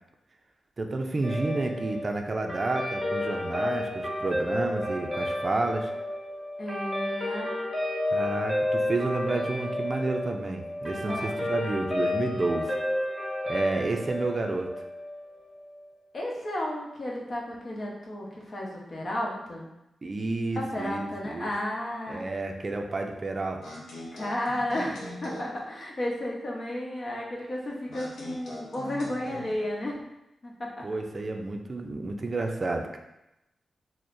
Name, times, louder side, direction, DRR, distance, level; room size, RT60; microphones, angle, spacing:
voice 1, 0.8-5.9 8.1-12.8 13.5-14.7 20.0-21.5 22.1-23.6 30.8-33.0, right 2 dB, 35° right, 3 dB, 0.4 m, -30 dB
Guitar, 1.2-15.8, left 1 dB, 10° left, 0.9 m, -31 dB
voice 2, 6.6-7.5 11.1-11.4 16.1-19.7 20.5-22.2 24.1-30.0 30.4-30.8, left 1 dB, 45° left, -3 dB, 0.9 m, -33 dB
sound 1, 23.6-25.6 27.9-29.5, left 1 dB, 90° left, 0.9 m, -41 dB
6.0 x 2.1 x 2.6 m, 0.92 s
wide cardioid pair, 105°, 0 cm